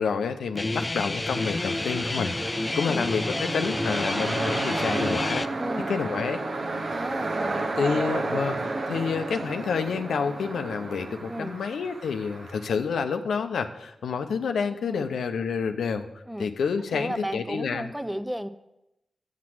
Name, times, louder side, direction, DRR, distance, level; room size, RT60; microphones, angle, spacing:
voice 1, 0.0-2.3 2.8-5.4 5.9-6.4 7.8-17.9, left 6 dB, 85° left, 7 dB, 0.6 m, -29 dB
Guitar, 0.6-5.5, left 2 dB, 35° left, 0.4 m, -29 dB
sound 1, 1.3-12.7, right 2 dB, 70° right, 0.8 m, -32 dB
voice 2, 5.6-5.9 6.9-8.0 11.3-11.6 14.8-15.1 16.3-16.5 16.9-18.5, equal, 10° right, 11 dB, 0.6 m, -34 dB
7.3 x 6.0 x 7.5 m, 0.91 s
cardioid pair, 40°, 0 cm